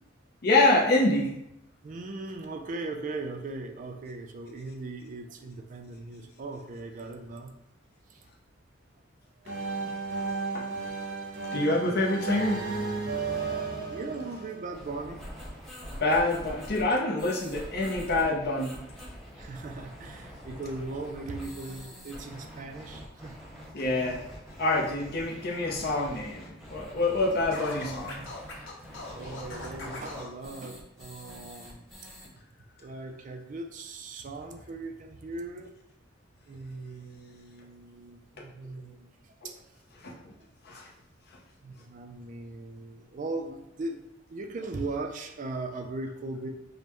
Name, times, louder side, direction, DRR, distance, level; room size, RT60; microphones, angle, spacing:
voice 1, 0.4-1.3 9.8-9.9 10.5-10.6 11.5-12.6 16.0-18.8 23.7-24.2 24.6-28.2 38.4-38.5 40.0-40.2 40.6-40.9, left 2 dB, 55° left, 0 dB, 0.7 m, -26 dB
voice 2, 1.8-7.5 8.1-8.3 9.4-10.1 11.5-12.0 13.9-15.2 19.4-23.3 24.8-24.9 29.1-31.8 32.8-35.7 36.4-39.6 41.6-46.5, right 2 dB, 40° right, 5 dB, 0.4 m, -39 dB
sound 1, 9.4-15.2, right 4 dB, 60° right, 0.8 m, -33 dB
sound 2, 14.7-32.3, equal, ahead, 0.9 m, -45 dB
Scratching (performance technique), 27.5-30.3, left 2 dB, 75° left, 0.9 m, -40 dB
5.3 x 2.1 x 3.0 m, 0.83 s
head